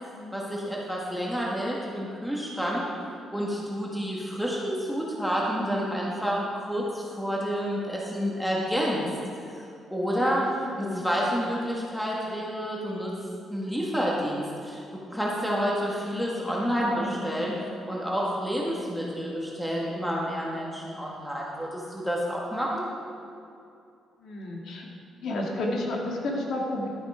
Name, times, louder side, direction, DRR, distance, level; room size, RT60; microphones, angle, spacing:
voice 1, 0.3-2.9 3.3-9.1 9.5-10.5 10.8-13.1 13.5-14.8 15.1-17.6 17.9-22.9, equal, ahead, -4 dB, 1.8 m, -29 dB
voice 2, 10.6-11.0 16.5-17.2 24.2-24.9 25.2-26.9, left 1 dB, 70° left, -1 dB, 2.1 m, -32 dB
12.0 x 7.8 x 5.0 m, 2.5 s
cardioid pair, 90°, 0 cm